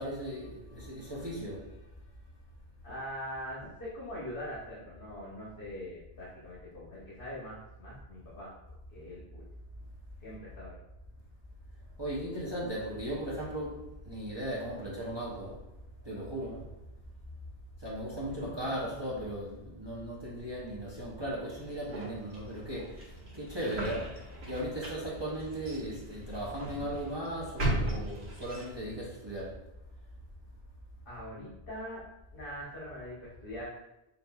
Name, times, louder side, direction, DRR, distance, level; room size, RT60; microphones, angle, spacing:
voice 1, 0.0-1.6 12.0-15.6 16.0-16.6 17.8-29.5, right 1 dB, 30° right, -5 dB, 0.7 m, -37 dB
voice 2, 2.8-8.5 8.9-9.4 10.2-10.8 18.2-18.6 31.0-32.0 32.3-33.7, equal, 55° left, -6 dB, 1.2 m, -42 dB
sound 1, 21.5-29.0, right 1 dB, 50° right, 1.6 m, -38 dB
4.4 x 3.9 x 2.3 m, 0.91 s
omnidirectional pair, 1.1 m